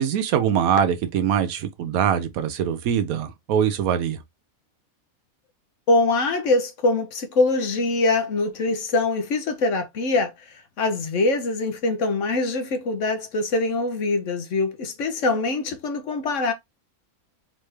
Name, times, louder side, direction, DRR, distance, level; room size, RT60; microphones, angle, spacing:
voice 1, 0.0-4.2, right 8 dB, 80° right, 1.1 m, -23 dB
voice 2, 5.9-16.5, left 3 dB, 60° left, 1.2 m, -23 dB
3.9 x 3.2 x 3.3 m
omnidirectional pair, 1.5 m